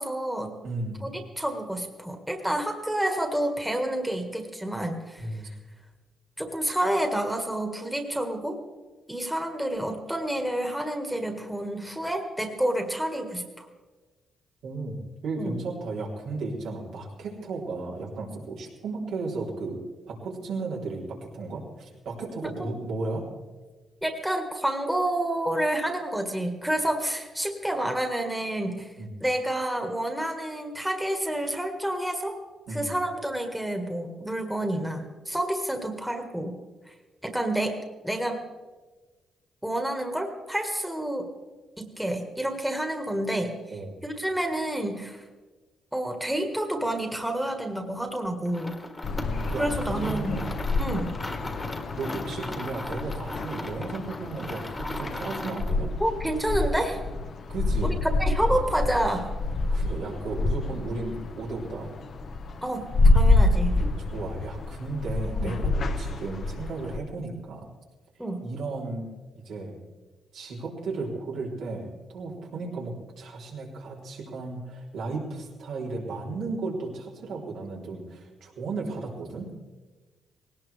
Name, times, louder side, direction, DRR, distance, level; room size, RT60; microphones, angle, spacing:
voice 1, 0.0-0.5 1.0-5.3 6.4-8.6 9.1-13.7 15.4-15.5 22.4-22.7 24.0-28.9 29.2-32.4 32.7-36.6 37.2-37.8 38.0-38.4 39.6-41.3 41.8-43.5 44.0-45.2 45.9-48.7 49.6-50.4 50.8-51.1 56.0-57.0 57.8-59.3 62.6-62.9 63.1-63.8 65.3-65.5 68.2-68.4, right 1 dB, 5° right, 4 dB, 1.7 m, -29 dB
voice 2, 0.6-1.0 5.2-5.5 14.6-19.8 20.1-23.3 29.0-29.1 32.7-32.9 43.7-44.0 49.1-50.6 51.4-51.5 51.9-55.9 57.5-58.0 59.7-61.9 64.0-67.7 68.4-69.1 69.5-69.8 70.3-79.5, right 3 dB, 80° right, -3 dB, 3.6 m, -34 dB
sound 1, 48.5-55.8, left 1 dB, 20° left, 1.7 m, -38 dB
sound 2, 49.0-67.0, left 2 dB, 50° left, 1.0 m, -27 dB
18.5 x 18.0 x 3.5 m, 1.3 s
cardioid pair, 105°, 0 cm